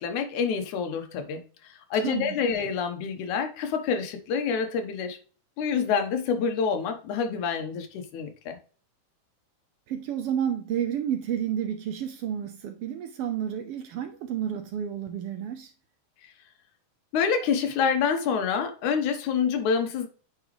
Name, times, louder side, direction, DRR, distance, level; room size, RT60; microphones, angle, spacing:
voice 1, 0.0-1.4 1.9-5.2 5.6-8.6 17.1-20.1, left 6 dB, 75° left, 2.4 m, -27 dB
voice 2, 1.9-2.4 9.9-15.7, right 9 dB, 90° right, 1.2 m, -30 dB
8.9 x 5.0 x 3.1 m
omnidirectional pair, 3.5 m